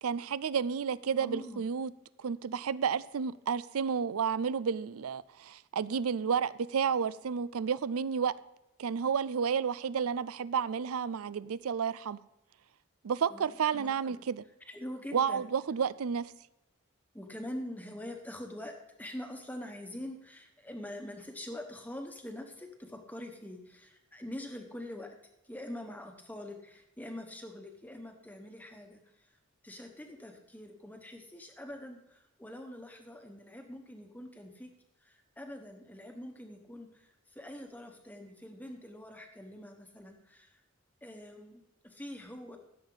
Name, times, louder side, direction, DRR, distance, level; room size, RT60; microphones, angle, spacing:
voice 1, 0.0-1.9 2.2-8.3 8.8-12.2 13.0-14.4 15.1-16.3, right 6 dB, 85° right, 0.5 m, -31 dB
voice 2, 1.2-1.6 13.3-13.4 13.7-14.1 14.7-15.4 17.1-25.1 25.4-29.0 29.6-34.7 35.0-40.6 41.0-42.6, left 1 dB, 10° left, 1.2 m, -44 dB
15.5 x 7.3 x 4.0 m
head